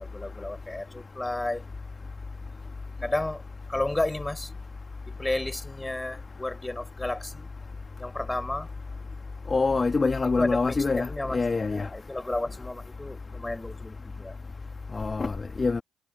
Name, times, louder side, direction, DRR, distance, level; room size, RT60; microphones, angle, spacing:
voice 1, 0.0-1.6 3.0-3.4 3.7-4.5 5.1-7.5 8.0-8.7 10.4-14.3, left 2 dB, 15° left, 5.3 m, -32 dB
voice 2, 9.5-11.9 14.9-15.8, left 4 dB, 30° left, 1.7 m, -25 dB
hypercardioid pair, 45°, 0 cm